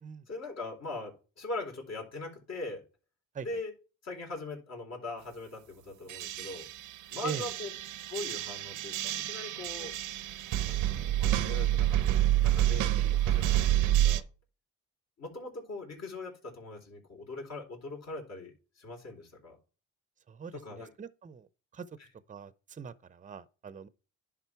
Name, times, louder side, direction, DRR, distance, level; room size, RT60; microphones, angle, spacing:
voice 1, 0.3-2.8 3.4-3.7 4.0-6.7 7.1-7.7 8.1-9.9 10.7-14.2 15.2-19.6 20.6-20.9 22.0-22.1, left 2 dB, 60° left, 4.0 m, -41 dB
sound 1, 6.1-14.2, right 13 dB, 90° right, 0.7 m, -28 dB
voice 2, 20.3-21.5 21.7-21.9 22.3-23.9, right 6 dB, 25° right, 0.6 m, -42 dB
10.5 x 3.8 x 4.7 m
cardioid pair, 90°, 30 cm